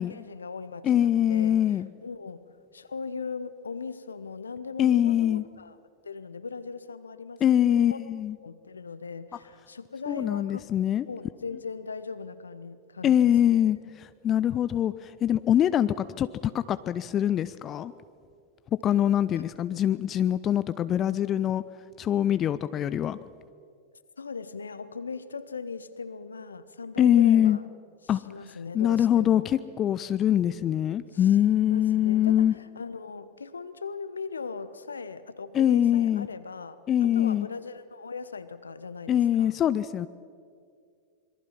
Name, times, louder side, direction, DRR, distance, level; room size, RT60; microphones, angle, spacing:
voice 1, 0.0-5.8 6.0-8.0 8.4-10.7 11.0-13.7 19.3-19.5 24.2-27.6 28.1-29.5 31.1-31.3 31.6-39.5, left 4 dB, 75° left, 14 dB, 1.1 m, -39 dB
voice 2, 0.8-1.9 4.8-5.4 7.4-8.4 10.1-11.1 13.0-16.3 16.5-17.9 18.8-21.6 22.0-23.2 27.0-27.6 28.1-28.2 28.7-32.5 35.5-36.3 36.9-37.5 39.1-40.1, left 10 dB, 30° left, 14 dB, 0.6 m, -23 dB
26.5 x 22.5 x 5.7 m, 2.3 s
figure-of-eight pair, 90°, 0 cm